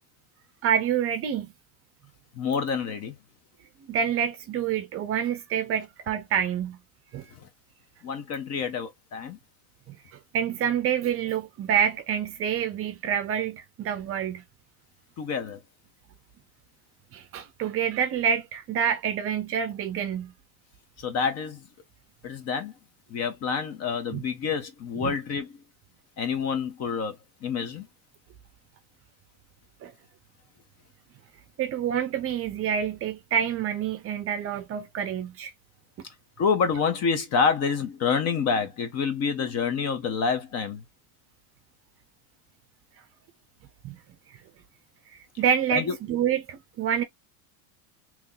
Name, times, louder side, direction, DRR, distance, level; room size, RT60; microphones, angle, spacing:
voice 1, 0.6-1.5 3.9-6.8 7.1-7.2 9.9-10.0 10.3-14.4 17.1-20.3 24.1-24.2 25.0-25.1 29.8-29.9 31.6-35.5 43.8-44.0 45.4-47.0, right 8 dB, 35° right, 0.6 m, -27 dB
voice 2, 2.3-3.1 7.3-7.5 8.0-9.4 15.2-15.6 21.0-21.7 22.2-22.7 23.1-25.6 26.2-27.2 27.4-27.9 36.4-40.8 45.7-46.0, left 6 dB, 35° left, 0.9 m, -27 dB
3.0 x 2.6 x 3.8 m
cardioid pair, 160°, 42 cm